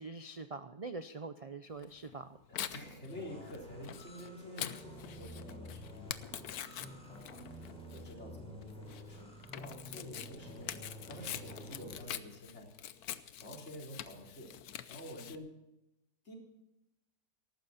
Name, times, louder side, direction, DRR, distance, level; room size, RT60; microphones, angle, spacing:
voice 1, 0.0-2.4, right 3 dB, 60° right, 10 dB, 0.3 m, -44 dB
Tearing, 1.8-15.4, left 10 dB, 80° left, 1.3 m, -45 dB
voice 2, 2.5-13.1 13.4-14.5 14.9-15.5 16.2-16.3, equal, 45° left, -1 dB, 4.3 m, -49 dB
sound 1, 3.1-12.0, equal, 5° left, 4.3 m, -50 dB
18.5 x 14.5 x 4.2 m, 0.89 s
omnidirectional pair, 1.6 m